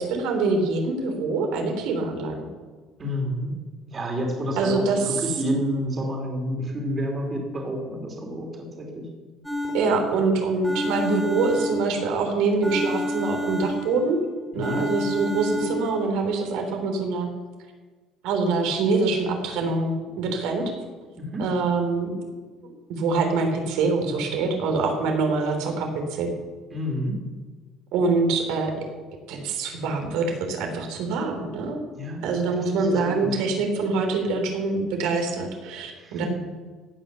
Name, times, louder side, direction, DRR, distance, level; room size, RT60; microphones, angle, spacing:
voice 1, 0.0-2.4 4.6-5.2 9.7-14.2 14.5-17.3 18.2-20.6 21.4-22.1 22.9-26.3 27.9-28.7 29.3-31.8 32.2-36.3, right 3 dB, 80° right, 4 dB, 3.5 m, -24 dB
voice 2, 3.0-3.5 3.9-8.5 8.8-9.0 14.5-14.8 21.2-21.4 26.7-27.1 31.9-32.2 32.5-33.3 36.0-36.3, equal, 25° right, 1 dB, 3.0 m, -29 dB
sound 1, 9.4-10.2 10.6-12.2 12.6-14.2 14.6-16.0, equal, ahead, 2.8 m, -30 dB
16.5 x 9.7 x 6.8 m, 1.4 s
cardioid pair, 155°, 0 cm